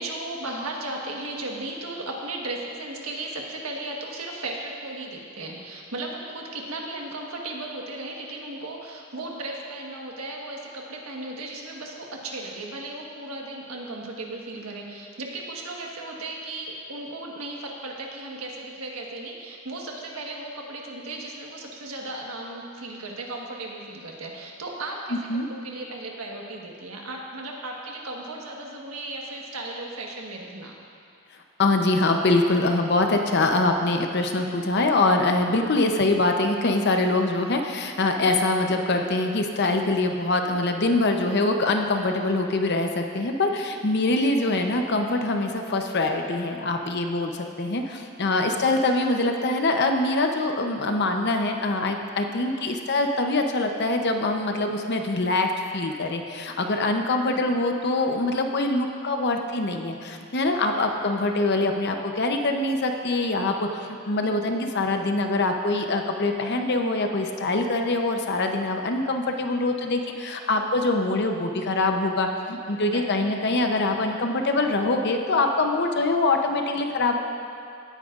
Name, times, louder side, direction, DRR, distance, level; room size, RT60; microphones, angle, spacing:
voice 1, 0.0-25.2 25.5-30.8 48.7-48.9 57.1-57.5 72.7-73.4, right 2 dB, 80° right, -1 dB, 1.4 m, -36 dB
voice 2, 31.6-55.5 55.7-77.2, left 2 dB, 50° left, 4 dB, 0.8 m, -24 dB
17.5 x 9.1 x 2.5 m, 2.5 s
head